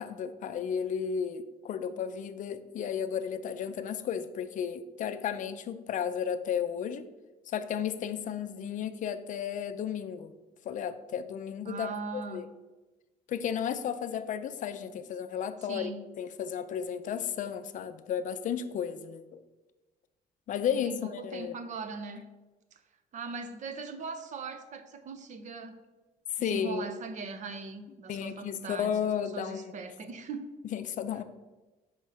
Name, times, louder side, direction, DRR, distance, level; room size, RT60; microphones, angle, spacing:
voice 1, 0.0-7.1 7.5-10.3 10.6-12.5 13.3-19.4 20.5-21.5 26.4-26.9 28.1-29.7 30.7-31.2, left 8 dB, 50° left, 11 dB, 0.5 m, -33 dB
voice 2, 11.7-12.5 15.6-16.1 20.7-22.2 22.7-22.8 23.1-25.8 26.4-30.5, right 4 dB, 45° right, 9 dB, 0.7 m, -40 dB
5.6 x 4.4 x 4.8 m, 1.2 s
cardioid pair, 110°, 17 cm